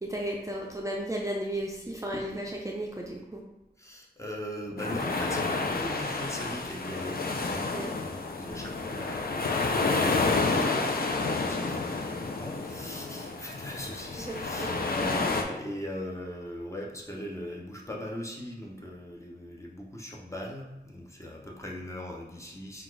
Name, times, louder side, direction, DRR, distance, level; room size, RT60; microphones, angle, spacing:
voice 1, 0.0-3.4 7.7-8.0 14.2-15.1, right 1 dB, 20° right, -1 dB, 0.4 m, -34 dB
voice 2, 3.8-22.8, left 1 dB, 15° left, -2 dB, 0.7 m, -40 dB
sound 1, 4.8-15.4, left 3 dB, 60° left, 0.5 m, -30 dB
4.0 x 2.4 x 4.6 m, 1.0 s
wide cardioid pair, 80°, 17 cm